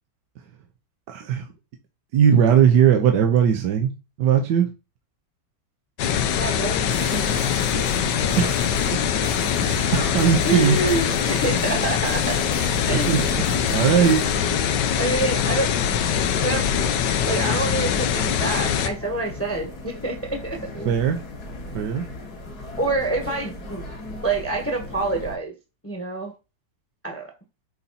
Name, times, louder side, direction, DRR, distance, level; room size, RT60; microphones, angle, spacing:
voice 1, 1.1-1.5 2.1-3.9 4.2-4.7 8.4-10.8 12.7-14.2 20.8-21.2 21.7-22.0, right 8 dB, 85° right, 1.5 m, -20 dB
sound 1, 6.0-18.9, left 8 dB, 85° left, 1.4 m, -23 dB
voice 2, 6.3-7.4 7.7-8.2 8.7-8.8 9.0-9.2 10.4-12.4 12.9-13.8 14.5-15.7 16.4-16.9 17.2-20.9 21.5-22.0 22.8-23.9 24.2-25.5 25.8-26.3 27.0-27.3, right 2 dB, 10° left, 1.1 m, -28 dB
sound 2, 6.9-14.4, right 6 dB, 65° right, 1.4 m, -39 dB
sound 3, 10.6-25.4, left 2 dB, 65° left, 2.3 m, -38 dB
7.1 x 4.1 x 4.1 m
omnidirectional pair, 1.8 m